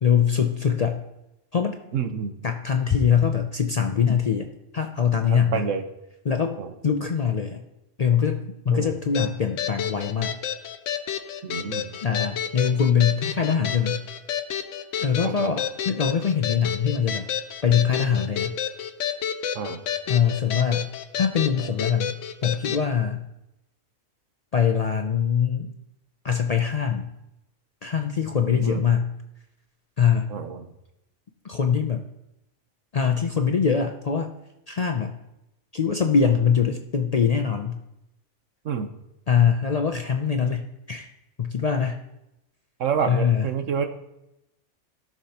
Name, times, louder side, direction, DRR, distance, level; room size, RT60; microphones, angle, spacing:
voice 1, 0.0-1.0 1.5-1.8 2.4-4.5 4.7-5.6 6.3-6.6 6.8-7.6 8.0-10.4 12.0-14.0 15.0-17.3 17.6-18.6 20.1-20.9 21.2-22.1 22.4-23.3 24.5-25.7 26.2-27.1 27.8-29.1 30.0-30.3 31.4-32.0 32.9-34.3 34.7-35.1 35.7-37.8 39.3-41.1 41.4-42.0 43.1-43.5, left 7 dB, 50° left, 5 dB, 0.5 m, -23 dB
voice 2, 1.9-2.4 5.3-5.8 6.6-6.7 8.7-9.0 11.4-11.9 15.2-15.5 19.5-19.8 28.5-28.8 30.3-30.7 38.6-38.9 42.8-43.9, right 6 dB, 85° right, 7 dB, 1.2 m, -28 dB
sound 1, 9.1-22.8, left 9 dB, 80° left, 1.0 m, -30 dB
16.0 x 6.0 x 2.9 m, 0.87 s
omnidirectional pair, 1.3 m